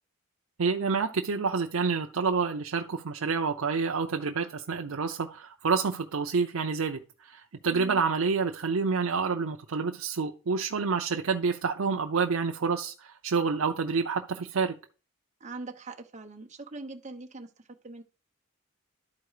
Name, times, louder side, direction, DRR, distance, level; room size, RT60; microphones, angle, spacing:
voice 1, 0.6-14.8, right 5 dB, 85° right, 0.6 m, -28 dB
voice 2, 7.7-8.0 15.4-17.5 17.8-18.0, right 3 dB, 35° right, 1.0 m, -41 dB
11.5 x 4.5 x 4.9 m
head